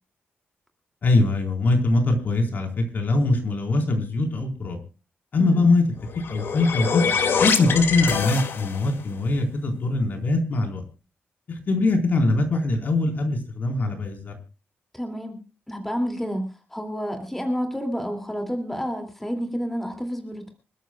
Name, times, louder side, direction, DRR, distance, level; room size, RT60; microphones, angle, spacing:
voice 1, 1.0-4.8 5.3-5.8 6.3-7.0 7.4-10.8 11.5-14.3, left 2 dB, 50° left, 4 dB, 4.2 m, -22 dB
sound 1, 6.0-9.0, left 6 dB, 70° left, 2.2 m, -25 dB
voice 2, 14.9-15.4 15.7-20.5, equal, 5° left, 4 dB, 2.5 m, -30 dB
26.5 x 13.5 x 2.3 m, 0.32 s
wide cardioid pair, 170°, 4 cm